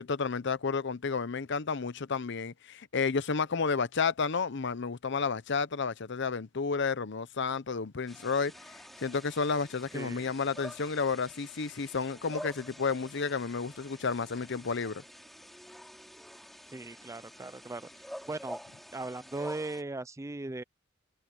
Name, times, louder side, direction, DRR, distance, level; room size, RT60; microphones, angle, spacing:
voice 1, 0.0-15.0, left 5 dB, 60° left, 0.8 m, -31 dB
sound 1, 8.1-19.8, equal, ahead, 4.3 m, -48 dB
voice 2, 9.9-10.3 16.7-17.9 18.3-18.6 18.9-20.6, right 2 dB, 15° right, 0.4 m, -38 dB
head